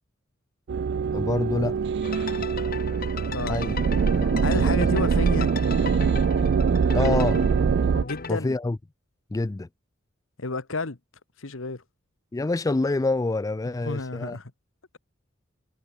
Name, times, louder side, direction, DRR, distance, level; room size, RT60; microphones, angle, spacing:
sound 1, 0.7-8.0, right 6 dB, 60° right, 0.4 m, -23 dB
voice 1, 1.1-1.8 3.5-3.8 4.2-4.7 6.9-7.4 8.3-8.8 9.3-9.7 12.3-14.4, left 2 dB, 15° left, 0.4 m, -26 dB
sound 2, 2.0-8.3, left 5 dB, 50° left, 1.9 m, -37 dB
voice 2, 3.3-3.7 4.4-5.5 8.0-8.5 10.4-11.0 11.4-11.8 13.6-14.5, left 3 dB, 75° left, 1.4 m, -31 dB
head